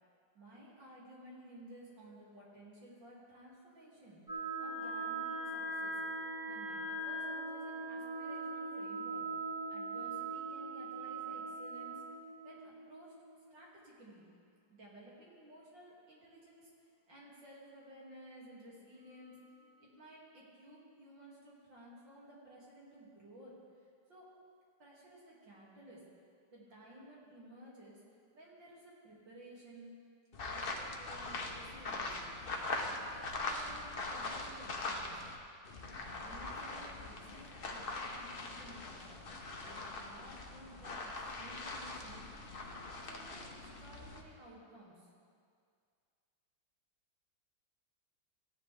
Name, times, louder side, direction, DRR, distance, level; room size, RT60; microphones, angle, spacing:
voice 1, 0.3-6.0 6.5-9.2 9.7-12.0 12.4-13.1 13.5-14.2 14.7-19.4 19.8-24.3 24.8-26.1 26.5-28.0 28.3-29.9 30.4-32.1 32.6-35.2 35.8-39.2 39.6-42.2 42.6-45.1, right 1 dB, 70° right, -5 dB, 3.1 m, -55 dB
sound 1, 4.3-13.8, right 2 dB, 10° right, 1.3 m, -41 dB
sound 2, 30.3-35.4 35.6-44.2, left 2 dB, 45° left, 0.8 m, -42 dB
15.5 x 10.5 x 3.4 m, 2.2 s
omnidirectional pair, 2.1 m